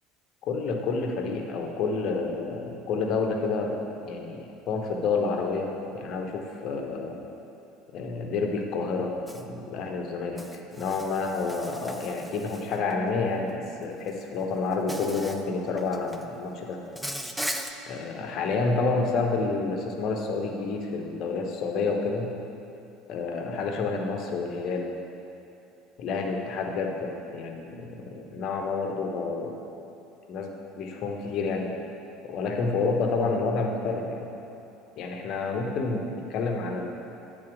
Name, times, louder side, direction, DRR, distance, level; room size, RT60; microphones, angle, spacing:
voice 1, 0.4-7.1 7.9-10.4 10.7-16.8 17.8-22.3 23.1-24.9 26.0-29.6 30.3-31.7 32.2-34.2 35.0-36.9, left 4 dB, 50° left, 2 dB, 1.0 m, -29 dB
Insect, 9.3-9.4 10.4-12.9 14.1-14.2 14.9-15.4 15.8-16.3 17.0-17.7, equal, 5° right, 0.5 m, -37 dB
8.7 x 4.2 x 6.2 m, 2.9 s
figure-of-eight pair, 65°, 0 cm